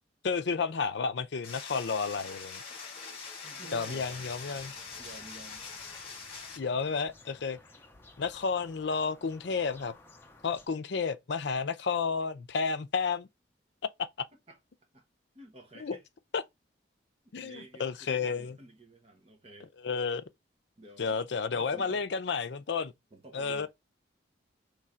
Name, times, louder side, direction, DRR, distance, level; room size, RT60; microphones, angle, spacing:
voice 1, 0.2-2.6 3.7-4.7 6.6-7.6 8.2-9.9 10.4-13.3 15.8-16.0 16.3-16.4 17.3-18.6 19.8-20.2 21.0-22.9 23.3-23.7, left 5 dB, 65° left, 0.5 m, -31 dB
sound 1, 1.4-6.6, left 5 dB, 30° left, 1.6 m, -43 dB
voice 2, 3.4-4.2 5.0-5.6 14.5-14.6 14.9-15.1 15.3-16.0 17.4-19.7 20.8-21.2 21.5-22.0 23.1-23.7, right 2 dB, 30° right, 0.9 m, -51 dB
sound 2, 3.9-10.7, left 2 dB, 10° left, 0.6 m, -56 dB
3.7 x 3.2 x 4.2 m
head